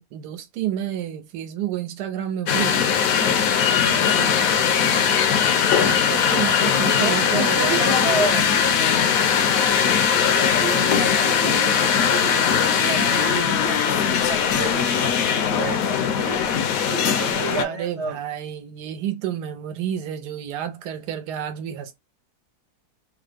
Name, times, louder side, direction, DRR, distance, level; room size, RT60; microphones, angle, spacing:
voice 1, 0.0-4.7 5.6-8.3 17.6-22.0, right 10 dB, 85° right, 1.2 m, -31 dB
sound 1, 2.5-17.7, left 7 dB, 70° left, 0.9 m, -20 dB
voice 2, 6.4-8.5 10.1-18.2, right 4 dB, 60° right, 0.8 m, -31 dB
3.3 x 2.0 x 3.3 m
omnidirectional pair, 1.7 m